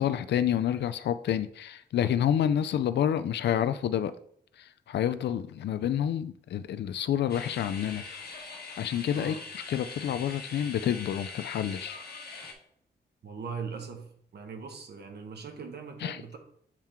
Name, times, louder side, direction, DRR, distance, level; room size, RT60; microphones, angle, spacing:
voice 1, 0.0-4.1 4.6-8.0 8.8-9.4 9.7-12.0 16.0-16.2, left 10 dB, 80° left, 0.4 m, -28 dB
sound 1, 7.3-12.5, left 4 dB, 60° left, 1.2 m, -42 dB
voice 2, 13.2-16.4, right 5 dB, 70° right, 1.1 m, -40 dB
7.3 x 3.6 x 4.4 m
wide cardioid pair, 125°, 18 cm